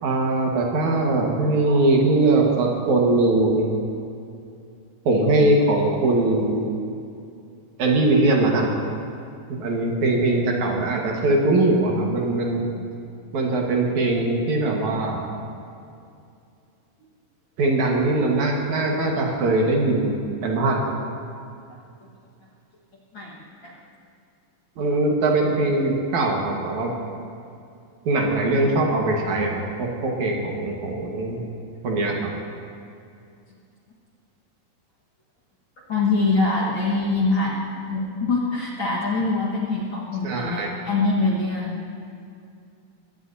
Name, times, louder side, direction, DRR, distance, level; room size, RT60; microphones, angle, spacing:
voice 1, 0.0-3.7 5.0-6.7 7.8-8.7 9.5-12.6 13.3-15.2 17.6-20.1 20.4-20.8 24.8-27.0 28.0-31.4 31.8-32.3 40.2-40.7, right 2 dB, 65° right, -1 dB, 2.8 m, -21 dB
voice 2, 23.1-23.7 35.9-37.6 37.9-41.8, left 3 dB, 45° left, -4 dB, 1.9 m, -24 dB
21.0 x 16.0 x 2.8 m, 2.5 s
omnidirectional pair, 3.7 m